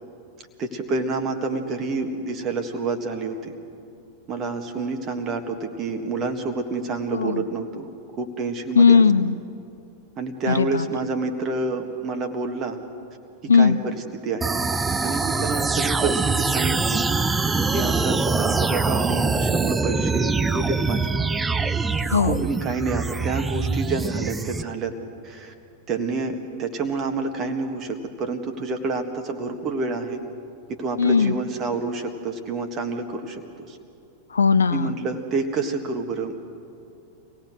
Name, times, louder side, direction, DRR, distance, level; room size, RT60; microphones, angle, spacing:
voice 1, 0.6-3.5 4.3-9.0 10.2-12.8 13.5-14.6 15.0-17.0 17.7-21.0 22.0-24.9 25.2-25.5 25.9-30.2 30.7-33.8 34.7-36.4, right 3 dB, 30° right, 5 dB, 1.7 m, -28 dB
voice 2, 7.1-7.4 8.8-9.4 10.5-10.8 13.5-13.8 22.1-22.4 31.0-31.4 34.3-34.9, left 5 dB, 75° left, 13 dB, 0.6 m, -18 dB
sound 1, 14.4-24.6, right 4 dB, 10° right, 0.6 m, -24 dB
25.5 x 17.5 x 6.3 m, 2.5 s
figure-of-eight pair, 90°, 0 cm